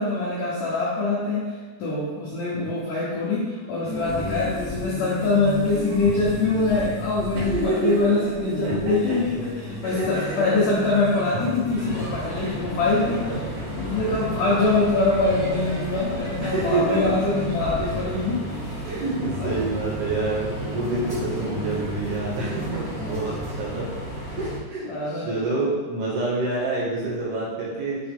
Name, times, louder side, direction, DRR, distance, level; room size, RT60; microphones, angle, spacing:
voice 1, 0.0-1.5 1.8-13.4 13.7-18.9 19.3-19.7 23.0-23.1 24.9-25.3, left 3 dB, 75° left, -7 dB, 1.9 m, -24 dB
sound 1, 3.8-23.5, left 1 dB, 90° right, 0.8 m, -35 dB
voice 2, 7.4-7.9 8.6-9.2 9.8-10.3 12.4-12.5 13.1-13.4 14.1-14.6 16.4-17.0 17.8-17.9 18.9-23.9 24.2-28.0, right 3 dB, 65° right, -6 dB, 3.3 m, -28 dB
sound 2, 11.8-24.6, equal, 40° left, 1.9 m, -34 dB
8.5 x 4.2 x 3.5 m, 1.4 s
omnidirectional pair, 5.3 m